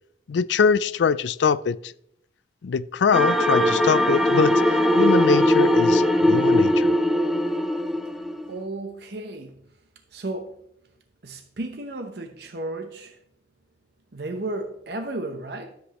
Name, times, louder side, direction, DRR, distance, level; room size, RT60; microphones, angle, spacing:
voice 1, 0.3-1.9 2.6-6.9, left 6 dB, 75° left, 0.4 m, -23 dB
sound 1, 3.1-8.5, equal, ahead, 0.6 m, -20 dB
voice 2, 8.5-9.6 10.1-10.5 11.2-13.2 14.1-15.7, right 2 dB, 60° right, 0.9 m, -33 dB
13.0 x 7.9 x 3.1 m
head